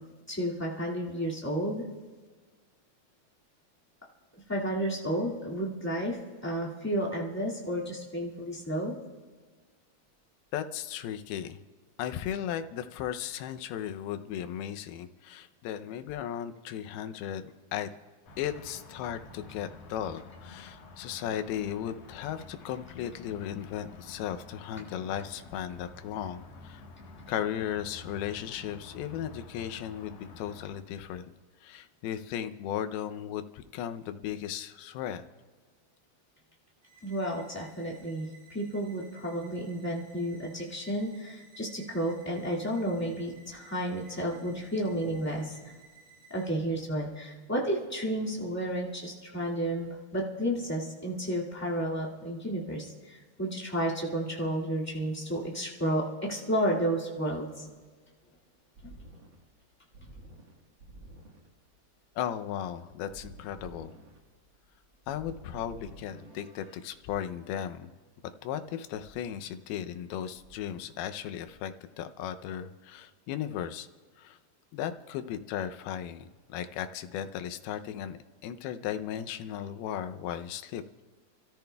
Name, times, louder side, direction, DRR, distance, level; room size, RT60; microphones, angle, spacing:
voice 1, 0.3-1.8 4.5-8.9 37.0-45.8 46.3-57.7 58.8-58.9, right 1 dB, 10° left, -6 dB, 0.8 m, -32 dB
voice 2, 10.5-11.6 12.0-17.4 17.7-17.9 18.4-26.8 27.3-31.3 31.6-35.2 62.2-63.9 65.1-67.9 68.4-73.9 74.2-74.4 74.7-80.8, left 10 dB, 90° left, 8 dB, 2.6 m, -36 dB
sound 1, 18.3-30.7, left 3 dB, 55° left, 2.0 m, -49 dB
sound 2, 36.8-46.5, right 5 dB, 85° right, 5.1 m, -57 dB
sound 3, 58.2-67.0 68.9-70.1 70.4-71.5, right 2 dB, 55° right, 1.3 m, -52 dB
29.5 x 14.0 x 2.3 m, 1.5 s
omnidirectional pair, 4.3 m